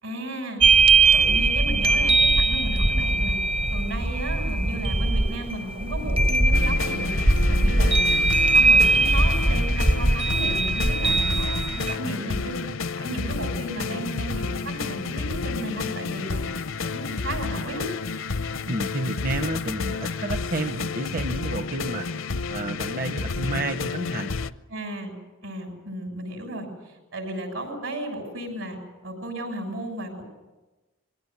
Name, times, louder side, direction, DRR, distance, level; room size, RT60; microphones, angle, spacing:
voice 1, 0.0-0.6 1.1-3.4 3.7-7.1 7.5-8.0 8.5-12.6 13.0-16.4 16.8-17.9 24.7-25.1 25.4-28.8 29.0-30.2, right 1 dB, 75° right, 4 dB, 7.1 m, -34 dB
sound 1, 0.6-11.9, right 3 dB, 25° right, 0.7 m, -20 dB
sound 2, 6.5-24.5, left 4 dB, 65° left, 0.7 m, -30 dB
voice 2, 18.7-24.5, right 2 dB, 40° right, 6 dB, 1.0 m, -30 dB
23.0 x 17.0 x 9.7 m, 1.1 s
head